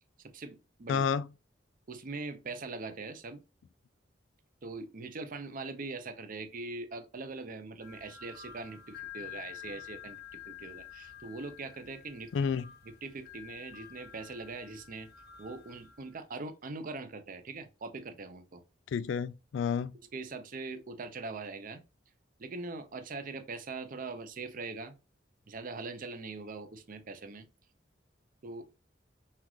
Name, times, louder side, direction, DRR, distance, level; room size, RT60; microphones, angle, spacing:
voice 1, 0.2-1.0 1.9-3.4 4.6-12.3 12.9-15.1 15.4-18.6 20.1-21.8 22.4-24.9 25.5-27.5 28.4-28.7, right 3 dB, 50° right, 0.6 m, -42 dB
voice 2, 0.9-1.3 12.3-12.6 18.9-19.9, left 6 dB, 80° left, 0.3 m, -30 dB
sound 1, 7.8-16.2, left 10 dB, 60° left, 0.8 m, -49 dB
5.7 x 2.4 x 3.1 m
head